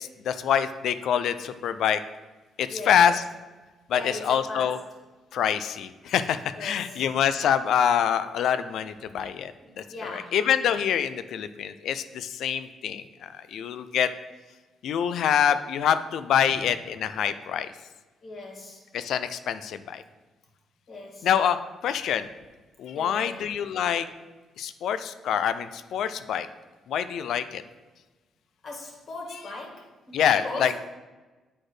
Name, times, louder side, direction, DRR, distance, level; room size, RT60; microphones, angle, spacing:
voice 1, 0.0-2.0 2.6-3.2 3.9-4.8 5.3-14.1 14.8-17.7 18.9-20.0 21.2-21.6 21.8-22.3 22.8-24.1 24.6-26.5 26.9-27.6 30.1-30.7, left 8 dB, 75° left, 12 dB, 0.4 m, -25 dB
voice 2, 2.7-3.2 3.9-4.8 6.5-7.0 9.6-10.4 16.5-16.6 18.2-18.8 20.9-21.3 22.9-23.4 28.6-30.7, left 2 dB, 50° left, -1 dB, 2.1 m, -39 dB
7.9 x 4.3 x 4.8 m, 1.2 s
cardioid pair, 90°, 0 cm